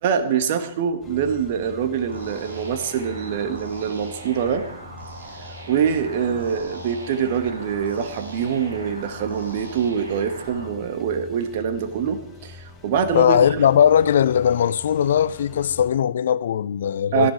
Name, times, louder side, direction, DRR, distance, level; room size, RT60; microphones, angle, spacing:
voice 1, 0.0-4.7 5.7-13.6 17.1-17.3, right 7 dB, 50° right, 1.9 m, -24 dB
sound 1, 1.0-15.9, left 4 dB, 15° left, 4.9 m, -44 dB
sound 2, 2.1-10.6, right 2 dB, 75° right, 7.5 m, -40 dB
voice 2, 13.1-17.3, left 9 dB, 60° left, 0.6 m, -19 dB
17.5 x 14.0 x 4.8 m
figure-of-eight pair, 110°, 0 cm